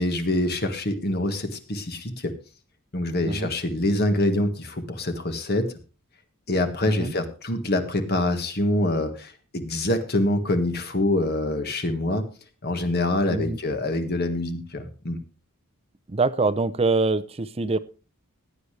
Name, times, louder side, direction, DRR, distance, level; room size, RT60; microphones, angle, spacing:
voice 1, 0.0-2.3 2.9-5.7 6.5-12.3 12.6-15.2, left 1 dB, 45° left, 7 dB, 1.6 m, -25 dB
voice 2, 16.1-17.8, right 3 dB, 25° right, 14 dB, 0.6 m, -24 dB
16.0 x 10.0 x 3.3 m, 0.33 s
head